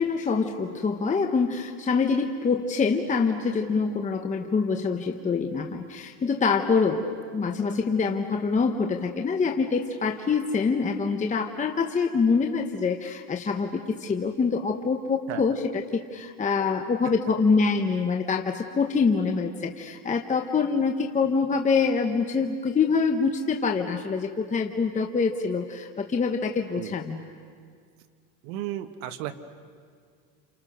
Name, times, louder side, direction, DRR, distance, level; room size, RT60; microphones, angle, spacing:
voice 1, 0.0-7.1 7.3-27.2, left 5 dB, 15° left, 4 dB, 1.0 m, -25 dB
voice 2, 28.4-29.3, right 13 dB, 75° right, 10 dB, 1.5 m, -33 dB
30.0 x 29.5 x 6.5 m, 2.1 s
cardioid pair, 140°, 44 cm